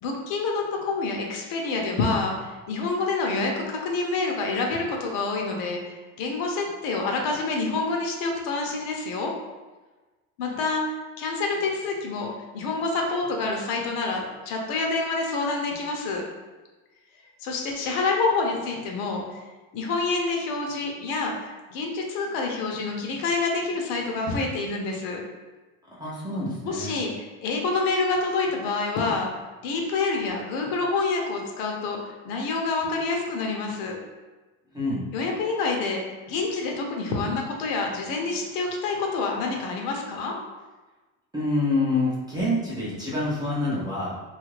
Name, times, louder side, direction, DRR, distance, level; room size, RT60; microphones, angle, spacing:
voice 1, 0.0-9.3 10.4-10.8 11.2-16.2 17.4-19.4 19.7-21.3 21.7-25.2 26.7-29.3 29.6-34.0 35.1-36.0 36.3-40.3, left 3 dB, 60° left, 1 dB, 0.7 m, -27 dB
voice 2, 25.9-27.0 34.7-35.1 41.3-44.2, left 2 dB, 10° right, -7 dB, 0.5 m, -27 dB
2.7 x 2.4 x 3.1 m, 1.2 s
cardioid pair, 130°, 41 cm